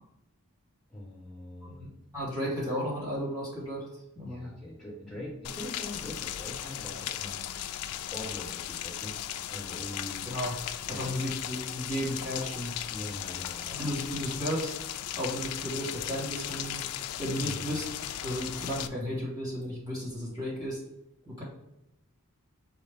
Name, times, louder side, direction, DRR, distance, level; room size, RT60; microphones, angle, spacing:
voice 1, 0.9-1.9 4.2-7.5 8.1-9.2 9.5-10.2 10.9-11.1 12.9-13.7 17.4-17.7, left 1 dB, ahead, -9 dB, 1.6 m, -42 dB
voice 2, 1.6-3.9 4.2-4.5 10.3-10.6 10.9-12.7 13.7-14.7 15.2-16.8 17.2-17.8 18.2-20.8 21.3-21.4, equal, 15° right, -7 dB, 1.8 m, -34 dB
Rain, 5.4-18.9, left 11 dB, 80° left, 0.3 m, -37 dB
6.3 x 2.4 x 3.5 m, 0.85 s
head